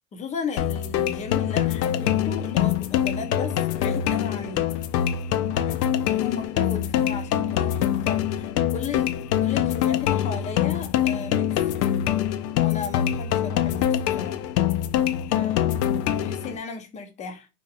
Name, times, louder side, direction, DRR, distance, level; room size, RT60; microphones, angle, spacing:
voice 1, 0.1-4.7 5.5-11.7 12.6-14.4 15.3-15.8 16.2-17.5, left 5 dB, 15° left, 0.4 m, -35 dB
sound 1, 0.6-16.6, left 10 dB, 80° left, 0.6 m, -24 dB
2.7 x 2.4 x 3.9 m
supercardioid pair, 125°, 48 cm